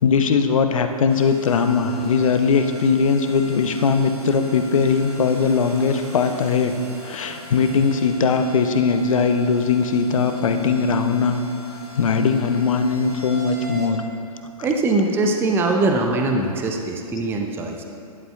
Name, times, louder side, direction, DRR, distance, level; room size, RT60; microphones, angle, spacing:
voice 1, 0.0-11.4 12.0-14.0 14.6-14.7, left 5 dB, 60° left, 8 dB, 0.8 m, -20 dB
sound 1, 1.1-13.9, left 1 dB, 85° right, 2.3 m, -41 dB
voice 2, 14.6-17.8, right 2 dB, 10° right, 3 dB, 0.6 m, -21 dB
12.5 x 11.0 x 2.4 m, 2.4 s
figure-of-eight pair, 115°, 19 cm